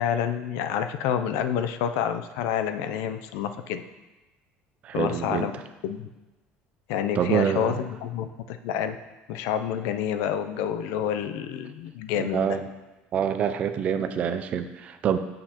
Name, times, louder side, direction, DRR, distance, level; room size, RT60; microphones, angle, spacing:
voice 1, 0.0-3.8 4.9-5.5 5.8-6.1 6.9-9.0 9.3-12.5, left 9 dB, 80° left, 9 dB, 0.5 m, -28 dB
voice 2, 4.8-5.5 7.2-7.7 12.2-12.6 13.1-15.2, right 8 dB, 35° right, 9 dB, 0.4 m, -26 dB
7.7 x 6.4 x 2.9 m, 1.1 s
cardioid pair, 170°, 4 cm